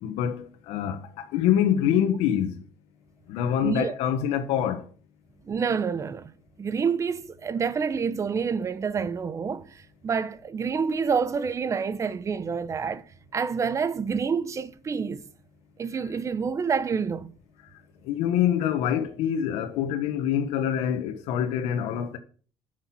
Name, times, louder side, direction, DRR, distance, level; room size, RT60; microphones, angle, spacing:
voice 1, 0.0-2.5 3.3-4.8 18.1-22.2, left 9 dB, 90° left, 1.3 m, -25 dB
voice 2, 3.6-3.9 5.5-6.3 6.6-9.7 10.0-13.0 13.3-15.2 15.8-17.3, right 6 dB, 30° right, 0.9 m, -27 dB
10.0 x 6.5 x 7.6 m
cardioid pair, 130°, 10 cm